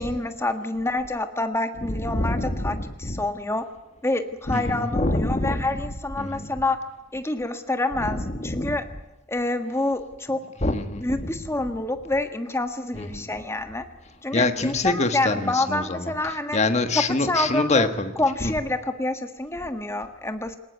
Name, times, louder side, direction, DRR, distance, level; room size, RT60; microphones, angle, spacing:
voice 1, 0.0-3.6 4.0-6.8 7.1-8.8 9.3-10.4 11.0-13.8 14.2-16.6 17.2-17.9 18.2-20.6, left 2 dB, 15° left, 7 dB, 1.5 m, -27 dB
voice 2, 1.8-3.2 4.5-5.6 6.2-6.5 8.0-8.8 10.6-11.4 12.9-13.2 14.3-18.1 18.4-18.5, left 2 dB, 35° left, 8 dB, 1.5 m, -26 dB
21.0 x 19.0 x 9.4 m, 0.96 s
head